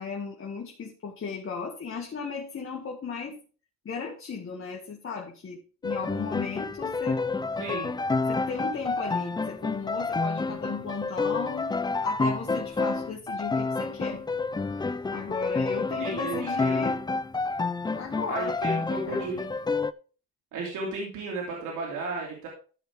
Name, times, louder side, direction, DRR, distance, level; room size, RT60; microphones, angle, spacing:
voice 1, 0.0-3.4 3.8-7.2 7.7-7.9 8.3-11.8 12.0-14.2 15.1-17.0 18.0-19.2, left 5 dB, 45° left, -1 dB, 2.1 m, -36 dB
sound 1, 5.8-19.9, left 3 dB, 15° left, 0.4 m, -29 dB
voice 2, 7.6-8.0 16.0-16.9 18.3-19.5 20.5-22.5, right 2 dB, 85° right, -2 dB, 2.9 m, -34 dB
14.0 x 5.6 x 3.5 m, 0.37 s
cardioid pair, 90°, 30 cm